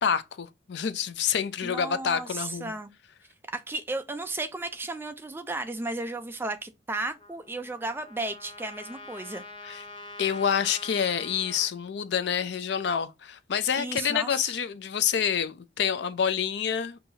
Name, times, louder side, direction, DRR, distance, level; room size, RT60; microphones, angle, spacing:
voice 1, 0.0-2.7 9.6-9.8 10.2-17.0, left 7 dB, 65° left, 0.4 m, -27 dB
voice 2, 1.6-2.9 3.5-9.4 13.8-14.5, right 2 dB, 10° right, 0.3 m, -34 dB
Trumpet, 7.2-11.7, left 2 dB, 25° left, 0.7 m, -45 dB
5.4 x 2.7 x 2.7 m
head